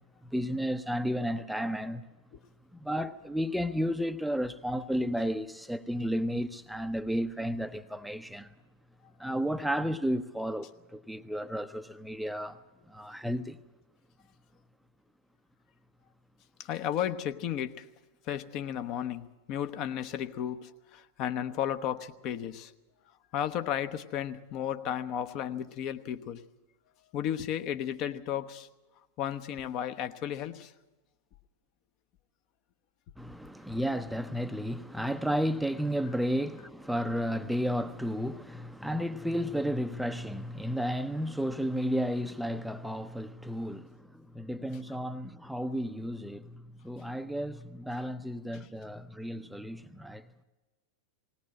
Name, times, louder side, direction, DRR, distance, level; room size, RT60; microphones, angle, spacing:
voice 1, 0.2-2.0 2.7-8.5 9.2-12.6 12.9-13.6 33.2-50.3, equal, ahead, 0.6 m, -33 dB
voice 2, 16.6-17.8 18.3-22.7 23.3-26.4 27.1-28.7 29.2-30.7, left 10 dB, 40° left, 0.9 m, -34 dB
19.5 x 17.5 x 7.6 m
figure-of-eight pair, 90°, 0 cm